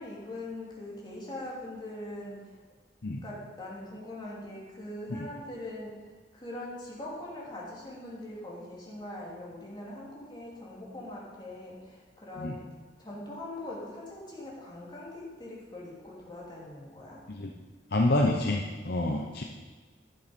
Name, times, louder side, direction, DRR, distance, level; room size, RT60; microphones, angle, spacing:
voice 1, 0.0-2.6 3.2-5.9 6.3-12.6 13.0-17.2, left 1 dB, 25° left, -5 dB, 3.0 m, -42 dB
voice 2, 17.9-19.4, left 2 dB, 60° left, 1 dB, 0.9 m, -27 dB
11.5 x 7.9 x 5.3 m, 1.4 s
head